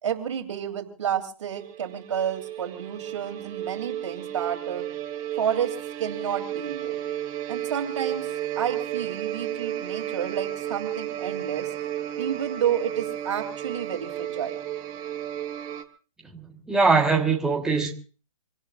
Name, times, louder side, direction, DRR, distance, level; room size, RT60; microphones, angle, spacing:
voice 1, 0.0-4.9 5.4-7.0 7.5-8.3 8.6-11.7 12.2-14.6, right 9 dB, 60° right, 3.2 m, -30 dB
sound 1, 1.5-15.8, right 12 dB, 20° right, 1.3 m, -33 dB
voice 2, 16.3-17.9, right 4 dB, 5° right, 1.4 m, -22 dB
26.5 x 17.5 x 2.5 m
hypercardioid pair, 150°, 18 cm